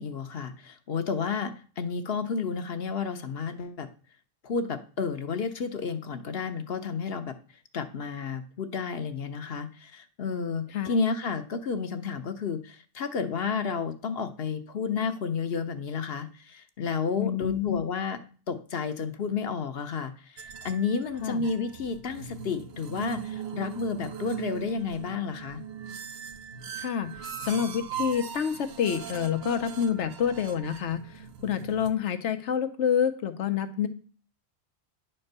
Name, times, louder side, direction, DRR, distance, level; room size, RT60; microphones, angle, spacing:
voice 1, 0.0-3.9 4.4-7.4 7.7-18.2 18.5-25.6, left 5 dB, 60° left, 8 dB, 1.0 m, -31 dB
voice 2, 17.2-17.8 21.2-21.4 26.8-33.9, left 8 dB, 85° left, 10 dB, 1.1 m, -28 dB
sound 1, 20.4-31.9, right 8 dB, 65° right, 1.0 m, -40 dB
9.8 x 4.4 x 6.6 m, 0.39 s
omnidirectional pair, 1.2 m